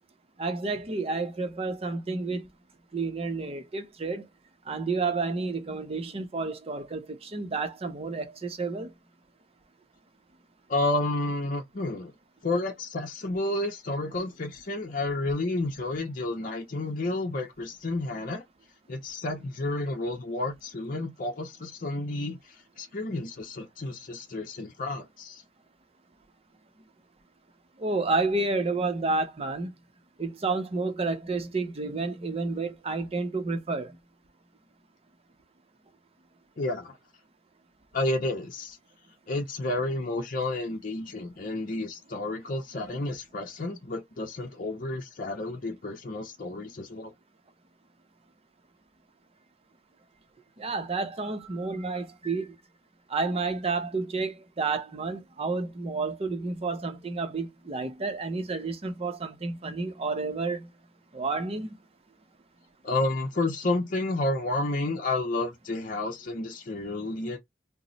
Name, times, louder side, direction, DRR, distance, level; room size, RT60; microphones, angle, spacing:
voice 1, 0.4-2.5 2.9-4.3 4.7-8.9 27.8-29.7 30.2-34.0 50.6-52.5 53.1-60.7 61.1-61.7, right 3 dB, 35° right, 0.6 m, -30 dB
voice 2, 10.7-12.1 12.4-18.4 18.9-25.4 36.6-37.0 37.9-38.8 39.3-47.1 62.8-67.4, left 2 dB, 50° left, 0.7 m, -31 dB
2.9 x 2.0 x 3.9 m
head